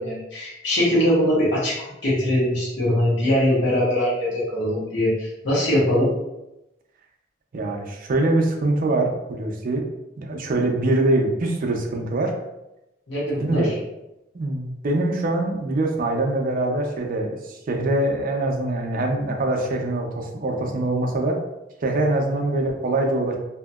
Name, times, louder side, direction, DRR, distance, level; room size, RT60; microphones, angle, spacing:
voice 1, 0.0-1.8 2.0-6.1 13.1-13.7, left 1 dB, 70° left, -7 dB, 1.2 m, -22 dB
voice 2, 7.5-9.8 10.2-12.3 13.4-13.7 14.3-21.4 21.8-23.4, right 2 dB, 45° right, 2 dB, 0.5 m, -23 dB
2.7 x 2.7 x 2.3 m, 0.92 s
head